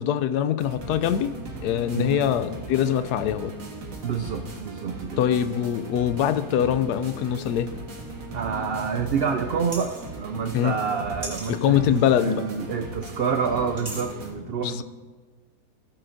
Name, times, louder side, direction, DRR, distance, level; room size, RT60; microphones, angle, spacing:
voice 1, 0.0-3.5 5.2-7.7 10.5-10.8 11.5-12.4 14.6-14.8, left 10 dB, 85° left, 12 dB, 1.1 m, -23 dB
sound 1, 0.6-14.3, right 2 dB, 60° right, 1.8 m, -38 dB
voice 2, 1.9-2.3 4.0-5.2 8.3-14.8, right 6 dB, 80° right, 6 dB, 0.5 m, -28 dB
sound 2, 9.7-10.1 11.2-11.5 13.8-14.0, right 1 dB, 35° right, 2.5 m, -36 dB
16.0 x 7.8 x 2.6 m, 1.4 s
omnidirectional pair, 1.6 m